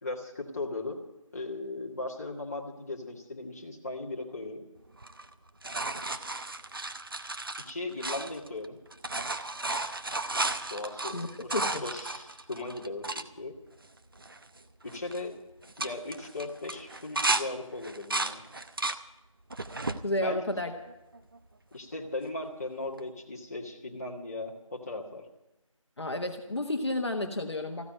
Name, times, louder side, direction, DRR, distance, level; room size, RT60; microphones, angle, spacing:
voice 1, 0.0-1.0 1.3-4.7 7.7-8.8 10.7-11.6 11.8-13.6 14.8-15.4 15.8-18.4 20.0-20.4 21.7-25.3, left 2 dB, 30° left, -2 dB, 1.8 m, -37 dB
sound 1, 5.0-8.7 8.9-13.3 13.8-13.9 14.2-14.6 14.9-15.2 15.6-17.4 17.8-19.0 19.5-20.0 20.6-21.4 23.0-23.1, right 2 dB, 40° right, 0.7 m, -33 dB
voice 2, 11.5-11.9 20.0-20.7 26.0-27.9, left 1 dB, 55° left, 4 dB, 1.4 m, -31 dB
15.0 x 9.4 x 9.1 m, 0.97 s
figure-of-eight pair, 170°, 17 cm